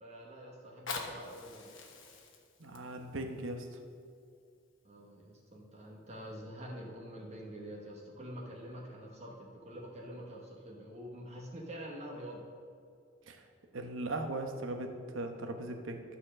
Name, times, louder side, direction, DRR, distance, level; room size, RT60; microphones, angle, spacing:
voice 1, 0.0-1.7 4.8-12.4, equal, 35° right, -2 dB, 1.1 m, -46 dB
Fire, 0.6-5.6 6.2-6.3, left 4 dB, 75° left, 1.2 m, -46 dB
voice 2, 2.6-3.6 13.3-13.4 13.7-16.0, right 2 dB, 75° right, 5 dB, 1.0 m, -38 dB
12.5 x 4.3 x 6.4 m, 2.4 s
head